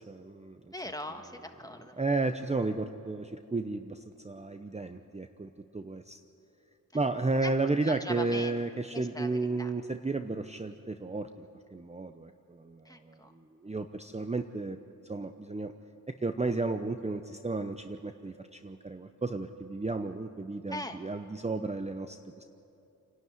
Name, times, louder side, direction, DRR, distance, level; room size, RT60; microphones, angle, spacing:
voice 1, 0.0-0.6 2.0-6.2 6.9-14.8 15.0-15.7 16.1-22.4, right 3 dB, 20° right, 7 dB, 0.7 m, -33 dB
voice 2, 0.7-2.0 7.4-7.5 7.8-8.5 8.9-9.7 12.8-13.3 20.7-21.0, left 1 dB, 10° left, 5 dB, 1.6 m, -40 dB
27.5 x 12.0 x 9.5 m, 2.8 s
wide cardioid pair, 65°, 34 cm